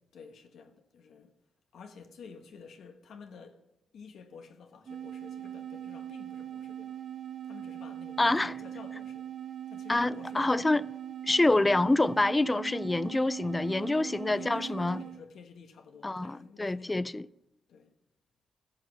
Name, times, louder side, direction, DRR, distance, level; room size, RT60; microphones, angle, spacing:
voice 1, 0.1-1.3 1.7-3.6 3.9-7.0 7.4-9.3 9.7-10.6 13.7-17.1 17.7-17.9, left 5 dB, 80° left, 1.0 m, -50 dB
sound 1, 4.9-15.2, right 10 dB, 70° right, 1.2 m, -41 dB
voice 2, 8.2-8.6 9.9-10.8 11.2-15.0 16.0-17.3, left 2 dB, 20° left, 0.3 m, -26 dB
14.0 x 6.2 x 5.7 m
cardioid pair, 80°, 0 cm